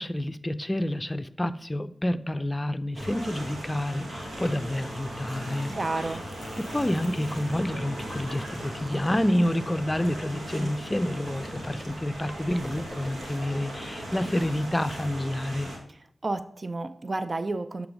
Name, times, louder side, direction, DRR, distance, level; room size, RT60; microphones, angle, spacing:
voice 1, 0.0-5.8 6.6-15.7, left 1 dB, 20° left, 0.5 m, -28 dB
sound 1, 2.9-10.6 11.3-13.3, equal, ahead, 0.9 m, -44 dB
sound 2, 2.9-15.8, right 1 dB, 85° right, 1.6 m, -38 dB
voice 2, 5.8-6.3 15.9-17.9, right 2 dB, 45° right, 0.4 m, -31 dB
7.8 x 3.5 x 5.0 m
cardioid pair, 40°, 0 cm